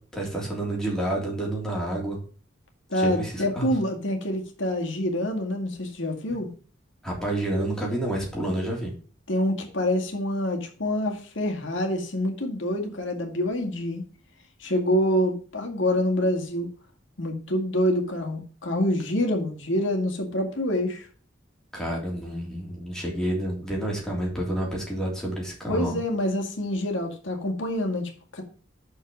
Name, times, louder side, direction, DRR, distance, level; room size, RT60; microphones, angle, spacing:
voice 1, 0.1-2.2 2.9-3.7 7.0-8.9 21.7-25.9, right 1 dB, 5° left, 3.2 m, -29 dB
voice 2, 2.9-6.5 9.3-14.0 14.6-16.7 17.2-21.1 25.7-28.4, left 1 dB, 80° left, 2.0 m, -26 dB
6.5 x 5.6 x 6.2 m
head